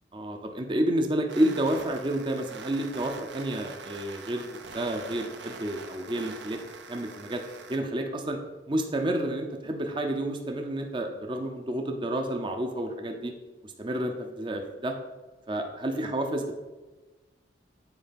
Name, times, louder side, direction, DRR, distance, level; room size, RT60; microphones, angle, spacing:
voice 1, 0.1-6.6 6.9-7.4 7.7-8.4 8.7-13.3 13.6-15.0 15.5-16.5, right 1 dB, 25° right, 4 dB, 0.6 m, -30 dB
sound 1, 1.3-7.8, right 4 dB, 75° right, 0.8 m, -44 dB
8.1 x 4.4 x 5.2 m, 1.2 s
head